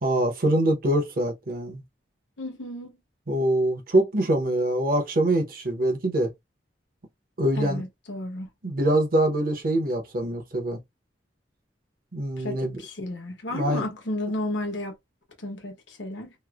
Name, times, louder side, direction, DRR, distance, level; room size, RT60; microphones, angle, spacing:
voice 1, 0.0-1.8 3.3-6.3 7.4-7.8 8.6-10.8 12.1-12.8 13.5-13.8, right 1 dB, 50° right, 0.8 m, -24 dB
voice 2, 2.4-2.9 7.6-8.5 12.4-14.9 15.4-16.3, left 1 dB, 85° left, 0.9 m, -33 dB
3.0 x 2.0 x 2.3 m
head